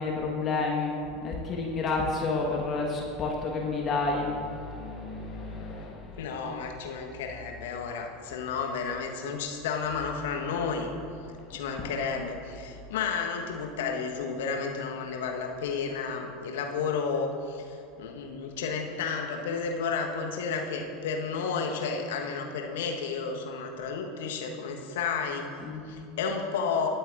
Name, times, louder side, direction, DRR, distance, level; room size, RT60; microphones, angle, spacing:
voice 1, 0.0-6.3 11.3-12.0 12.5-13.0 25.6-25.9, left 3 dB, 30° left, -1 dB, 1.4 m, -31 dB
voice 2, 6.2-10.9 11.5-26.9, left 5 dB, 60° left, 2 dB, 1.3 m, -32 dB
21.0 x 7.8 x 2.6 m, 2.4 s
figure-of-eight pair, 80°, 0 cm